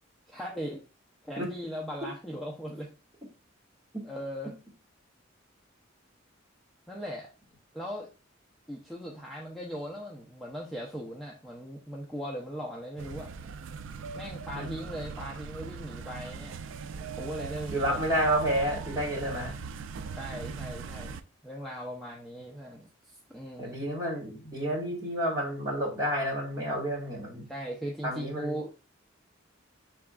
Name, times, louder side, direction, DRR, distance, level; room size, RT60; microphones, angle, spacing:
voice 1, 0.3-0.8 1.2-2.9 4.0-4.5 6.9-7.3 7.7-8.1 8.7-13.3 14.1-16.5 17.1-18.0 20.2-21.2 21.4-23.8 27.5-28.7, equal, ahead, -4 dB, 0.6 m, -39 dB
sound 1, 13.0-21.2, right 5 dB, 70° right, 0.3 m, -40 dB
voice 2, 17.7-19.6 23.6-27.5 28.0-28.6, equal, 20° right, -3 dB, 1.5 m, -30 dB
6.0 x 3.5 x 2.3 m, 0.32 s
head